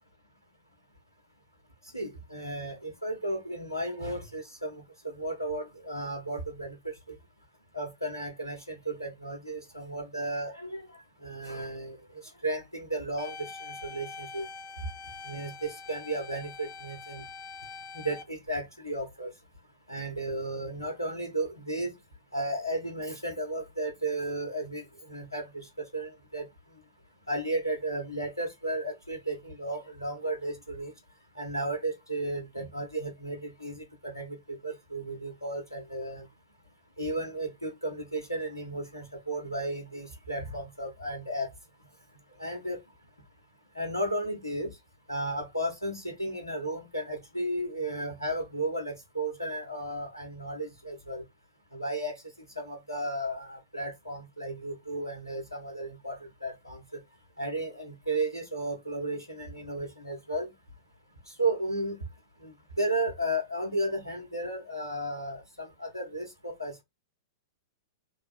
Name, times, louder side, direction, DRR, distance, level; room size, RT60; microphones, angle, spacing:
voice 1, 1.9-6.8 7.7-10.9 11.2-12.0 12.4-13.3 13.6-14.5 15.3-17.2 18.0-19.3 19.9-21.9 22.3-26.5 27.3-30.9 31.4-36.2 37.0-41.5 42.4-42.8 43.7-44.7 45.1-51.2 51.7-52.1 52.6-56.2 56.4-56.8 57.4-60.5 61.4-62.0 62.4-62.5 62.8-66.8, right 1 dB, 85° left, 1.1 m, -34 dB
sound 1, 13.2-18.2, left 4 dB, 35° left, 0.6 m, -44 dB
3.6 x 2.3 x 3.4 m
figure-of-eight pair, 100°, 2 cm